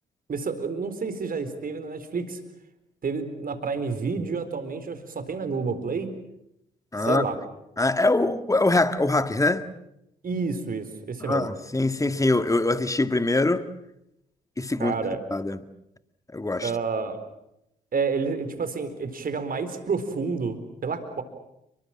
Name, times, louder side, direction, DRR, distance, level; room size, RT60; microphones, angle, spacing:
voice 1, 0.3-2.4 3.0-6.1 7.0-7.4 10.2-11.5 14.8-15.2 16.6-17.2 17.9-21.2, right 4 dB, 45° right, 4.2 m, -29 dB
voice 2, 6.9-7.3 7.8-9.7 11.3-13.6 14.6-15.0 15.3-15.6 16.3-16.7, left 2 dB, 15° left, 1.9 m, -23 dB
29.0 x 23.0 x 7.5 m
figure-of-eight pair, 45°, 21 cm